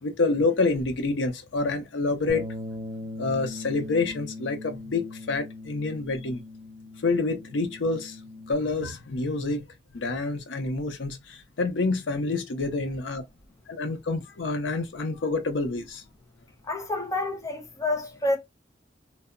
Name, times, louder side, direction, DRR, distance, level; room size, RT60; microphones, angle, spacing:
voice 1, 0.0-2.5 3.2-6.4 7.0-8.2 8.5-9.6 9.9-13.2 13.7-16.0, left 3 dB, 85° left, 0.6 m, -27 dB
Bass guitar, 2.3-8.5, left 2 dB, 30° right, 0.4 m, -40 dB
voice 2, 16.6-18.4, left 2 dB, 20° left, 0.5 m, -28 dB
2.1 x 2.0 x 3.5 m
head